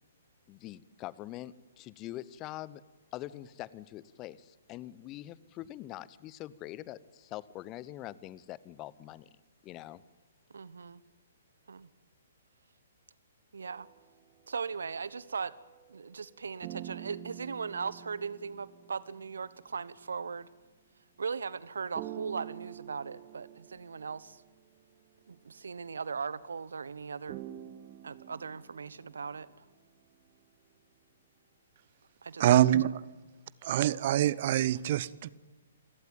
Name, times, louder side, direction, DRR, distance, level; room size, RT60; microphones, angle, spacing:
voice 1, 0.5-2.8 3.1-9.3 9.6-10.0, left 15 dB, 25° left, 20 dB, 0.9 m, -44 dB
voice 2, 10.5-11.0 11.7-11.9 13.5-13.9 14.5-15.5 15.9-20.5 21.2-24.4 25.3-27.4 28.0-29.7 32.2-32.9, right 5 dB, 70° right, 19 dB, 1.1 m, -38 dB
sound 1, 13.7-16.3 16.6-20.2 21.9-25.7 27.3-29.6, right 14 dB, 30° right, 1.6 m, -48 dB
voice 3, 32.4-32.9 33.6-35.3, right 12 dB, 45° right, 21 dB, 0.9 m, -25 dB
28.0 x 17.5 x 9.0 m, 1.3 s
figure-of-eight pair, 125°, 0 cm